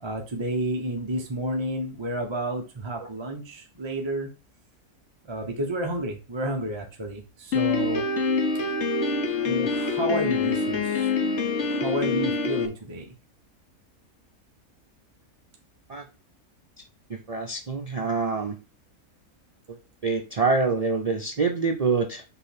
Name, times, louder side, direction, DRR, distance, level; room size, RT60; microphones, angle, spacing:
voice 1, 0.0-4.3 5.3-8.1 9.4-11.1 11.7-13.1, right 1 dB, 25° right, 1 dB, 0.7 m, -30 dB
Piano, 7.5-12.7, left 4 dB, 50° left, 1.2 m, -25 dB
voice 2, 17.1-18.6 19.7-22.2, right 4 dB, 70° right, 3 dB, 0.3 m, -26 dB
5.9 x 3.3 x 5.8 m, 0.32 s
omnidirectional pair, 1.6 m